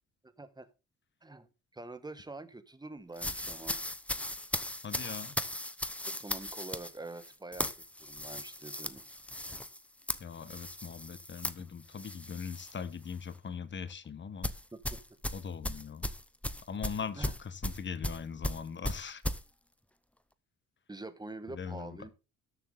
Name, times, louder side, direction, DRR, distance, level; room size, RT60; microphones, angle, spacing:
voice 1, 0.4-0.7 1.2-3.8 6.2-9.0 14.7-15.0 17.2-17.3 20.9-22.1, right 2 dB, 15° right, 1.3 m, -45 dB
sound 1, 3.2-12.8 13.1-13.4 14.4-19.4, left 1 dB, 5° left, 0.8 m, -37 dB
voice 2, 4.8-5.3 10.2-14.5 15.3-16.1 16.7-19.2 21.5-22.0, left 6 dB, 40° left, 1.2 m, -40 dB
13.0 x 7.1 x 3.9 m
cardioid pair, 90°, 30 cm